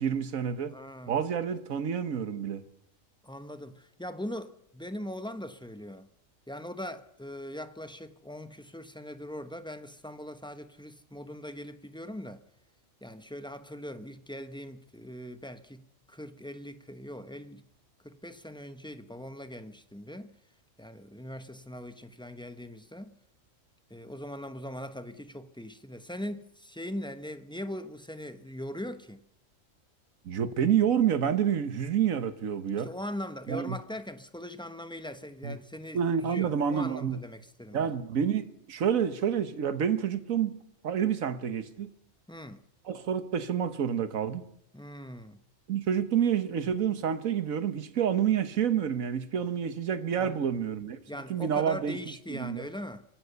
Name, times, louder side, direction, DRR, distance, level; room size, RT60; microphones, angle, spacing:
voice 1, 0.0-0.7 1.1-2.6 30.2-32.9 33.5-33.8 35.4-35.6 35.9-37.2 37.7-40.6 40.8-41.9 42.8-44.4 45.7-51.0 51.3-52.0 52.3-52.6, right 8 dB, 90° right, 1.5 m, -28 dB
voice 2, 0.7-1.2 3.2-6.1 6.5-12.4 13.0-17.6 18.0-20.3 20.8-23.1 23.9-29.2 32.8-37.9 42.3-42.6 44.7-45.4 50.2-50.5 51.1-53.0, left 1 dB, 5° left, 0.9 m, -41 dB
24.5 x 16.5 x 6.9 m
omnidirectional pair, 1.4 m